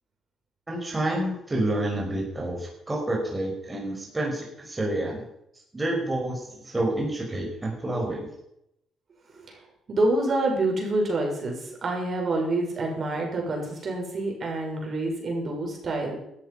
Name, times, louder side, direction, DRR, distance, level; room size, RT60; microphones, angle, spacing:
voice 1, 0.7-5.2 5.7-8.3, right 1 dB, 20° right, -1 dB, 5.3 m, -29 dB
voice 2, 9.9-16.2, right 2 dB, 45° right, 1 dB, 6.2 m, -27 dB
17.5 x 13.0 x 5.7 m, 0.81 s
cardioid pair, 95°, 0 cm